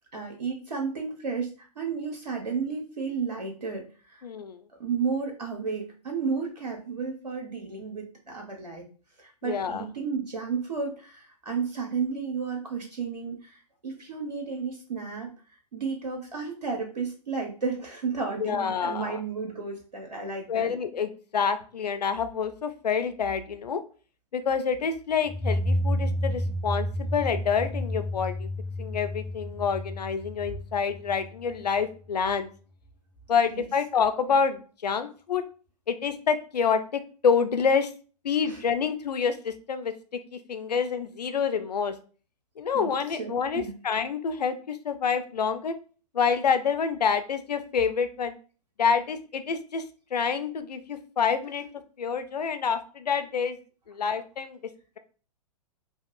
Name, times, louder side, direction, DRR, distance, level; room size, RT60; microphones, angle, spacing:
voice 1, 0.1-4.2 4.8-8.8 9.2-15.3 15.7-20.7 33.5-33.7 38.4-38.6 42.7-42.9 43.2-43.8, right 5 dB, 90° right, 1 dB, 0.7 m, -32 dB
voice 2, 4.2-4.6 9.4-9.9 18.4-19.2 20.5-23.8 24.3-28.5 28.8-32.5 33.3-35.4 35.9-37.9 38.2-39.9 40.3-41.9 42.6-45.7 46.1-48.3 48.8-49.8 50.1-51.6 52.0-53.6 53.9-54.6, left 6 dB, 80° left, 10 dB, 0.4 m, -27 dB
sound 1, 25.3-31.8, equal, 10° left, 0.4 m, -30 dB
2.6 x 2.4 x 2.6 m, 0.38 s
figure-of-eight pair, 115°, 20 cm